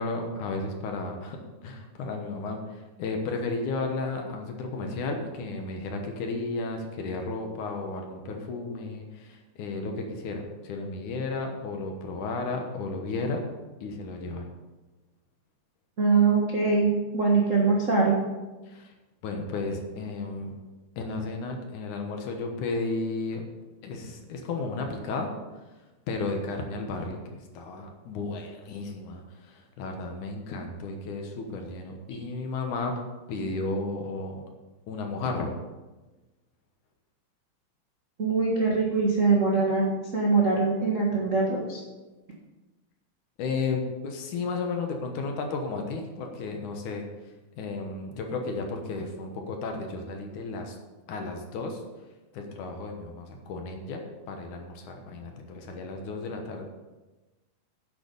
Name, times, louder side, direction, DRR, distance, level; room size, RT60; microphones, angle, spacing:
voice 1, 0.0-13.4 13.8-14.5 18.7-18.9 19.2-20.5 21.0-23.5 23.8-25.3 26.1-32.9 33.3-34.4 34.9-35.5 43.4-47.0 47.6-50.8 51.1-51.8 52.3-56.7, left 3 dB, 65° left, 3 dB, 2.4 m, -33 dB
voice 2, 16.0-18.2 38.2-41.8, right 4 dB, 75° right, -3 dB, 0.7 m, -23 dB
9.8 x 8.0 x 5.3 m, 1.1 s
omnidirectional pair, 4.2 m